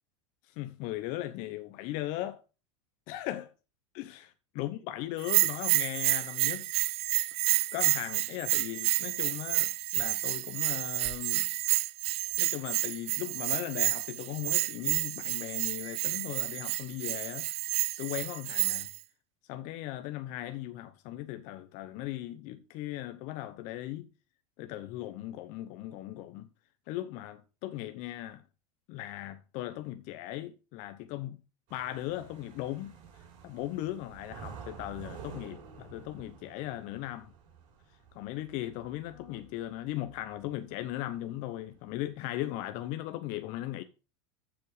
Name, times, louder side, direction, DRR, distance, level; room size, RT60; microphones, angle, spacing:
voice 1, 0.5-2.4 3.1-3.5 4.0-6.7 7.7-11.5 12.4-18.9 19.5-24.1 24.6-26.5 26.9-28.4 28.9-31.4 31.7-32.9 33.4-37.3 38.1-43.8, left 14 dB, 55° left, 0.8 m, -38 dB
Bell, 5.2-19.0, right 17 dB, 40° right, 0.4 m, -30 dB
sound 1, 31.7-41.1 41.4-42.1, right 6 dB, 55° right, 4.6 m, -50 dB
7.6 x 7.3 x 4.9 m
supercardioid pair, 115°, 16 cm